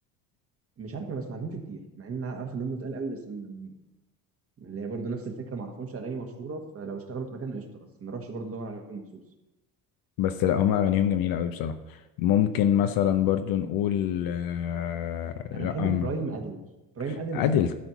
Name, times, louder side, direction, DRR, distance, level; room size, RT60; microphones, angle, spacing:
voice 1, 0.8-3.7 4.6-9.2 15.5-16.6 16.9-17.7, right 4 dB, 40° right, 4 dB, 1.6 m, -35 dB
voice 2, 10.2-11.8 12.2-16.1 17.3-17.7, left 10 dB, 70° left, 8 dB, 0.7 m, -25 dB
12.5 x 4.4 x 7.0 m, 1.0 s
cardioid pair, 115°, 36 cm